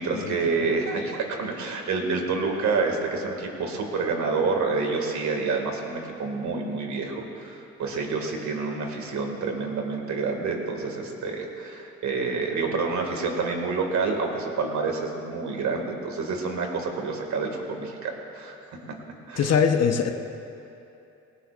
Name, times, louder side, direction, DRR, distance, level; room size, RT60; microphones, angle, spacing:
voice 1, 0.0-18.5 19.3-19.5, right 4 dB, 70° right, 2 dB, 2.2 m, -28 dB
voice 2, 19.4-20.1, left 6 dB, 55° left, 5 dB, 1.0 m, -22 dB
19.0 x 18.5 x 2.5 m, 2.7 s
cardioid pair, 90°, 30 cm